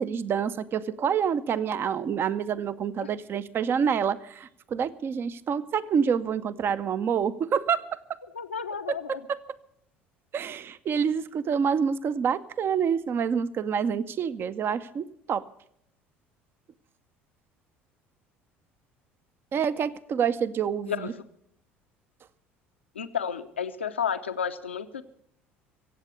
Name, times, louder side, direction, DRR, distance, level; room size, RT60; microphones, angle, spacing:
voice 1, 0.0-8.0 8.9-9.4 10.3-15.4 19.5-21.1, right 7 dB, 35° right, 15 dB, 0.6 m, -27 dB
voice 2, 8.3-9.2 20.9-21.2 23.0-25.0, left 7 dB, 80° left, 10 dB, 0.8 m, -32 dB
24.0 x 8.1 x 6.8 m, 0.71 s
figure-of-eight pair, 60°, 6 cm